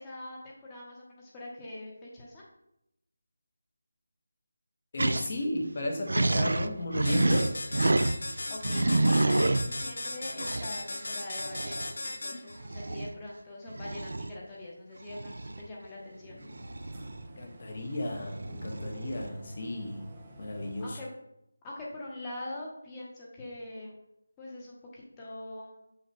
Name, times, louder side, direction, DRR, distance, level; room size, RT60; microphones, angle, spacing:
voice 1, 0.0-2.4 8.5-16.4 20.8-21.1 21.6-23.9 24.4-25.8, left 1 dB, 15° left, -4 dB, 1.0 m, -43 dB
voice 2, 4.9-7.5 12.3-12.4 17.4-20.0 20.4-21.0, left 1 dB, 40° left, 1 dB, 1.2 m, -34 dB
sound 1, 5.0-5.3 5.6-5.7 6.1-8.3 8.6-9.9 10.4-10.7 11.4-11.9 12.6-13.1 13.7-14.3 15.1-15.7 16.5-17.4 18.1-19.3, right 2 dB, 70° right, 0.4 m, -28 dB
sound 2, 7.0-12.6, left 2 dB, 75° left, 0.9 m, -37 dB
sound 3, 15.8-20.8, right 1 dB, 20° right, 1.0 m, -49 dB
5.7 x 5.6 x 3.3 m, 0.81 s
figure-of-eight pair, 170°, 0 cm